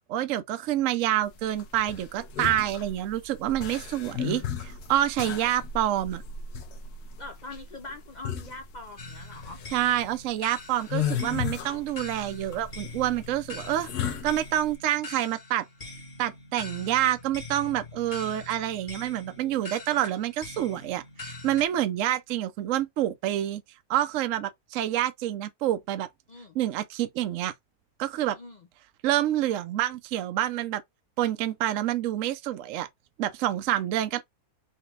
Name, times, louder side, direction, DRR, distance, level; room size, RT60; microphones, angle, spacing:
voice 1, 0.1-6.2 9.7-15.7 16.2-23.6 23.9-26.1 26.5-27.5 28.0-28.4 29.0-30.8 31.2-32.9 33.2-34.2, right 12 dB, 65° right, 0.9 m, -27 dB
sound 1, 1.3-14.7, left 8 dB, 90° left, 1.4 m, -35 dB
voice 2, 7.2-9.6 26.3-26.6 28.3-28.7, left 2 dB, 65° left, 0.4 m, -43 dB
sound 2, 9.0-21.7, left 2 dB, 35° left, 1.5 m, -43 dB
4.5 x 2.9 x 3.3 m
omnidirectional pair, 1.6 m